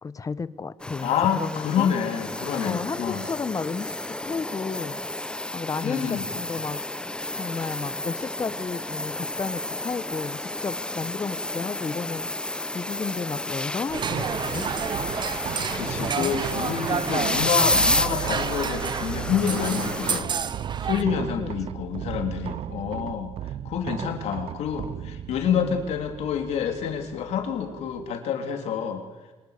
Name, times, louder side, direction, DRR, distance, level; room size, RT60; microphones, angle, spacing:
voice 1, 0.0-1.9 2.6-5.1 5.5-6.8 7.3-12.3 12.7-14.7 15.9-16.3 20.9-21.5 24.0-24.2 25.5-25.8, left 5 dB, 30° left, 16 dB, 1.1 m, -33 dB
sound 1, 0.8-20.2, left 1 dB, 10° left, 0.9 m, -31 dB
voice 2, 1.0-3.2 5.8-6.2 15.7-20.4 20.8-29.0, left 8 dB, 75° left, 5 dB, 3.4 m, -28 dB
sound 2, 13.9-21.0, right 7 dB, 45° right, 1.0 m, -30 dB
sound 3, 13.9-28.2, right 11 dB, 60° right, 0.7 m, -36 dB
26.5 x 23.0 x 6.7 m, 1.2 s
cardioid pair, 95°, 11 cm